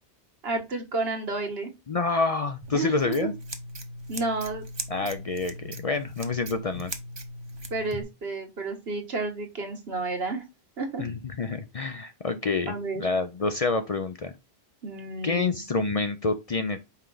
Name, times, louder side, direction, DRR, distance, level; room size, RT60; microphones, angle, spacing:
voice 1, 0.4-1.7 2.7-3.1 4.1-4.6 7.7-10.4 10.8-11.0 12.7-13.1 14.8-15.6, right 3 dB, 75° right, 4 dB, 1.6 m, -31 dB
voice 2, 1.9-3.3 4.9-6.9 11.0-14.3 15.2-16.8, left 3 dB, 45° left, 8 dB, 0.5 m, -28 dB
Scissors, 2.6-8.0, right 1 dB, 30° right, 0.7 m, -39 dB
5.7 x 4.4 x 3.8 m, 0.24 s
omnidirectional pair, 1.1 m